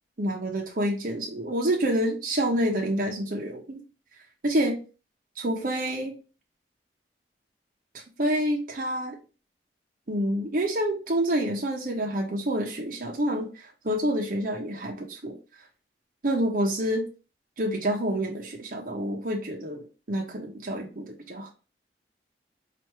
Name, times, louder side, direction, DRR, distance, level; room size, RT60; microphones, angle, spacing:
voice 1, 0.2-3.8 4.4-4.8 5.4-6.1 8.2-9.2 10.1-15.3 16.2-17.1 17.6-21.5, right 1 dB, 50° right, 0 dB, 0.8 m, -28 dB
4.5 x 2.5 x 3.0 m, 0.33 s
head